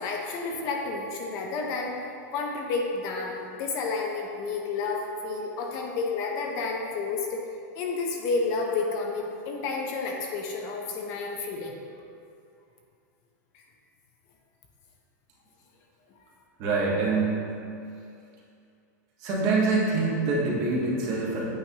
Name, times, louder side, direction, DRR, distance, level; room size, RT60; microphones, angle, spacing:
voice 1, 0.0-2.0 2.3-7.4 7.7-11.8 13.5-13.6, left 4 dB, 35° left, 1 dB, 0.6 m, -30 dB
voice 2, 16.6-17.5 19.2-21.4, right 3 dB, 35° right, -5 dB, 1.3 m, -25 dB
8.8 x 5.1 x 2.8 m, 2.5 s
supercardioid pair, 160°, 10 cm